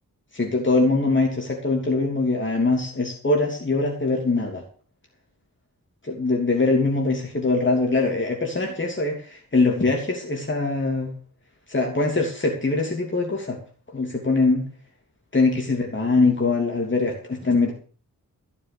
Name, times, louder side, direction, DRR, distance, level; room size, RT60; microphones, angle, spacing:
voice 1, 0.3-4.6 6.0-11.1 11.7-13.6 13.9-14.6 15.3-17.7, left 3 dB, 35° left, 0 dB, 3.0 m, -22 dB
15.0 x 7.2 x 6.9 m, 0.42 s
wide cardioid pair, 85°, 34 cm